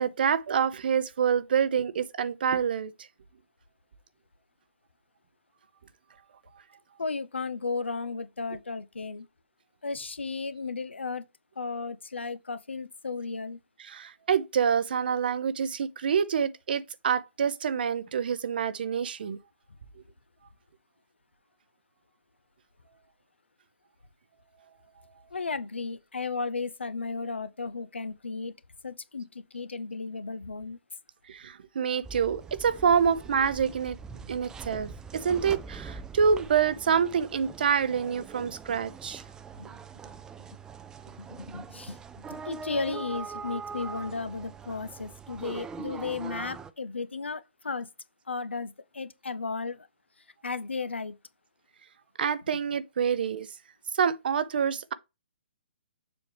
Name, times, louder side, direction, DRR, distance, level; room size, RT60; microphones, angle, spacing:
voice 1, 0.0-2.9 13.8-19.4 31.3-34.0 34.3-39.2 52.2-53.5 53.9-54.9, right 7 dB, 55° right, 0.6 m, -27 dB
voice 2, 7.0-9.3 9.8-11.3 11.6-13.6 25.3-28.5 28.8-30.8 39.6-39.7 40.0-40.1 41.2-47.9 48.3-49.9 50.4-51.2, left 4 dB, 75° left, 0.6 m, -34 dB
sound 1, 32.0-46.7, right 5 dB, 10° right, 0.4 m, -42 dB
7.0 x 4.5 x 3.4 m
figure-of-eight pair, 125°, 6 cm